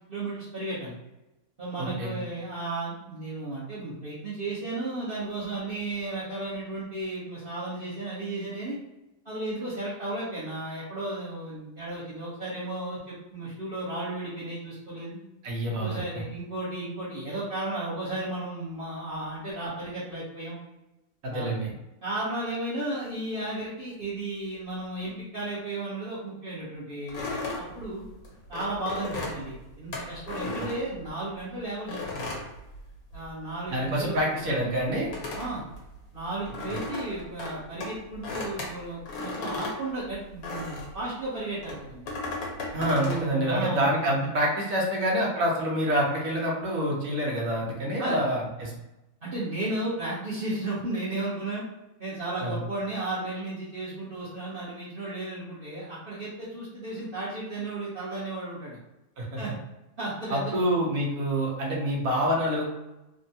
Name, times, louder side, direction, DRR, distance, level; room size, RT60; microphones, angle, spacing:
voice 1, 0.1-1.0 1.6-8.8 9.2-15.2 15.8-20.6 21.3-21.5 22.0-28.0 28.5-32.3 33.1-34.2 35.3-35.6 36.1-42.0 42.7-43.9 48.0-48.2 49.2-51.6 52.0-58.8 59.4-59.5 60.0-60.6, right 2 dB, 45° right, -11 dB, 1.0 m, -34 dB
voice 2, 1.8-2.2 15.4-16.0 21.2-21.7 30.6-30.7 33.7-35.1 42.7-48.7 52.4-52.6 59.2-59.4 60.3-62.6, equal, 70° right, -2 dB, 1.2 m, -27 dB
sound 1, 27.1-31.4 31.9-33.4 33.6-41.0 41.6-43.3, left 2 dB, 80° left, 1.3 m, -36 dB
3.5 x 2.1 x 2.7 m, 0.96 s
omnidirectional pair, 1.5 m